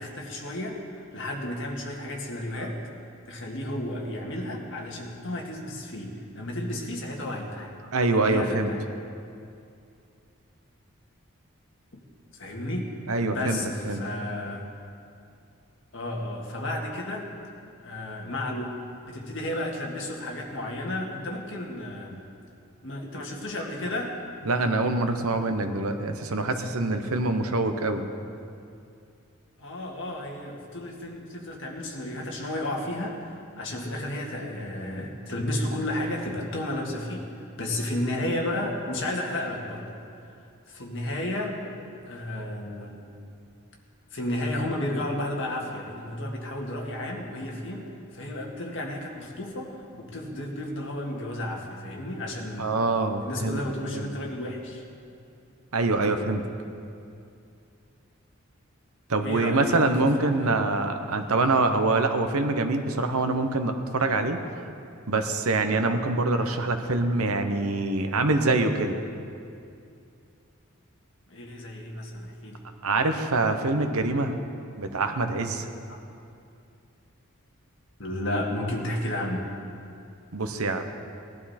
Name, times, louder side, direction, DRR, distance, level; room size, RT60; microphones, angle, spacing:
voice 1, 0.0-2.8 3.3-7.7 8.3-8.8 12.3-12.9 13.2-14.7 15.9-17.3 17.8-18.7 19.0-22.2 22.8-24.2 29.6-40.0 40.2-41.6 42.1-43.1 44.1-52.7 53.2-54.8 59.2-59.9 60.2-60.5 71.3-72.6 75.9-76.0 78.0-79.5, left 1 dB, 55° left, -1 dB, 1.9 m, -32 dB
voice 2, 7.9-8.7 13.1-13.6 13.8-14.0 24.5-28.1 52.6-53.6 53.9-54.1 55.7-56.4 59.1-64.4 65.1-69.0 72.8-74.4 74.8-75.7 80.3-80.8, right 2 dB, 80° right, 7 dB, 1.0 m, -25 dB
19.0 x 12.0 x 4.3 m, 2.5 s
head